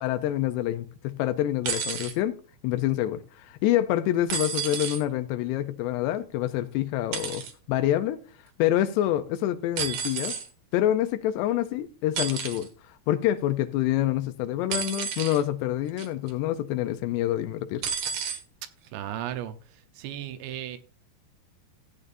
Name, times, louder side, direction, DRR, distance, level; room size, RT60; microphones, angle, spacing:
voice 1, 0.0-2.4 2.6-8.2 8.6-10.4 10.7-12.7 13.1-17.8, left 13 dB, 85° left, 2.8 m, -26 dB
sound 1, 1.6-2.1 4.3-5.0 7.1-7.5 9.8-10.5 12.2-12.7 14.7-15.4 16.0-16.3 17.8-18.4 19.4-19.5, right 7 dB, 65° right, 2.5 m, -31 dB
voice 2, 18.9-20.8, right 11 dB, 80° right, 3.0 m, -36 dB
15.0 x 8.8 x 2.6 m
omnidirectional pair, 4.8 m